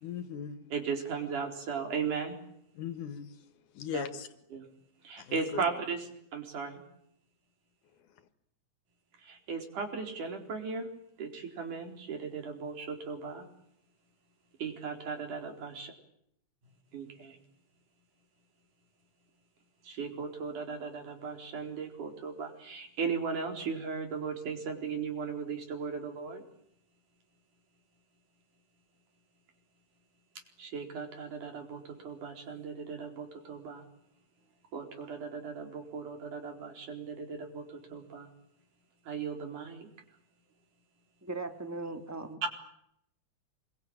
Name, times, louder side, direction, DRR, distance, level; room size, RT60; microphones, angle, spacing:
voice 1, 0.0-0.7 2.8-3.3 3.7-4.3 5.2-5.6, left 8 dB, 85° left, 12 dB, 3.1 m, -38 dB
voice 2, 0.7-2.4 3.9-4.0 4.5-4.7 5.0-6.1 6.3-6.8 9.2-10.9 11.2-13.5 14.6-15.9 16.9-17.4 19.8-26.4 30.6-33.8 34.7-38.3 39.1-39.9, right 5 dB, 90° right, 4 dB, 5.8 m, -37 dB
voice 3, 41.2-42.5, right 2 dB, 5° right, 7 dB, 2.0 m, -39 dB
26.5 x 22.5 x 9.0 m, 0.74 s
omnidirectional pair, 3.5 m